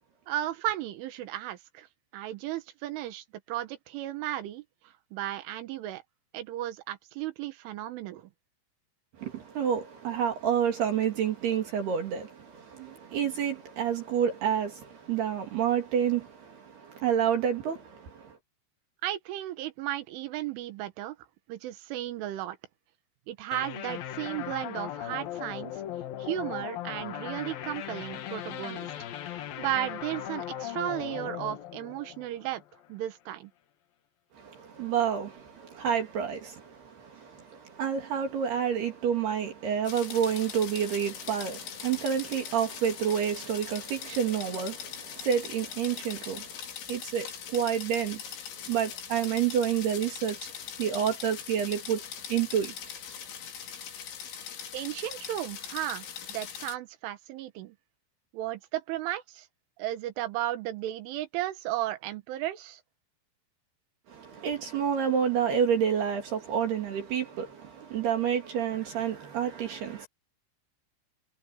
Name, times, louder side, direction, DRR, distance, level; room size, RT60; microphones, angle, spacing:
voice 1, 0.3-1.9 2.1-4.6 5.1-6.0 6.3-8.3 19.0-21.2 21.5-22.6 23.3-25.8 26.2-28.9 29.6-32.6 32.9-33.5 54.7-57.8 58.3-59.5 59.8-62.8, right 13 dB, 90° right, 3.9 m, -34 dB
voice 2, 9.2-18.4 34.3-46.5 46.9-48.3 48.7-50.5 50.8-52.0 52.3-52.7 64.1-70.1, right 8 dB, 60° right, 4.4 m, -29 dB
sound 1, 23.5-32.9, left 11 dB, 60° left, 2.9 m, -38 dB
sound 2, 39.9-56.8, left 8 dB, 75° left, 5.8 m, -41 dB
omnidirectional pair, 5.4 m